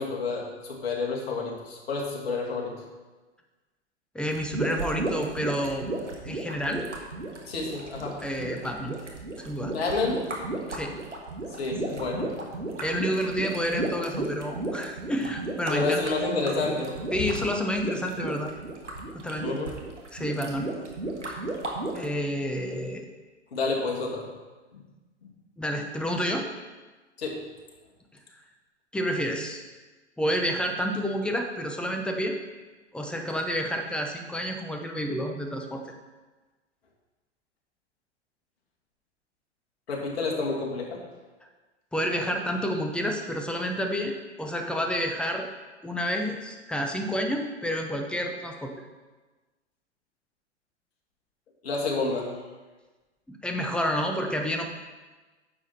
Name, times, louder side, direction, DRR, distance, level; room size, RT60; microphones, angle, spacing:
voice 1, 0.0-2.8 7.5-8.2 9.7-10.2 11.6-12.3 15.7-17.3 19.4-19.7 23.5-24.3 24.7-24.8 25.2-25.3 27.2-27.4 39.9-41.0 51.6-52.3, left 3 dB, 60° left, -1 dB, 2.3 m, -29 dB
voice 2, 4.1-5.9 6.2-6.9 8.2-9.0 9.4-9.7 10.7-10.9 12.8-16.0 17.1-18.5 19.1-19.5 20.1-20.7 21.3-21.5 21.9-23.1 25.6-26.5 28.9-29.6 30.2-32.4 32.9-35.9 41.9-45.5 45.8-48.7 53.3-54.7, equal, 5° left, 3 dB, 0.8 m, -29 dB
sound 1, 4.3-22.1, right 2 dB, 85° right, 1.6 m, -34 dB
9.7 x 7.2 x 4.2 m, 1.2 s
figure-of-eight pair, 100°, 35 cm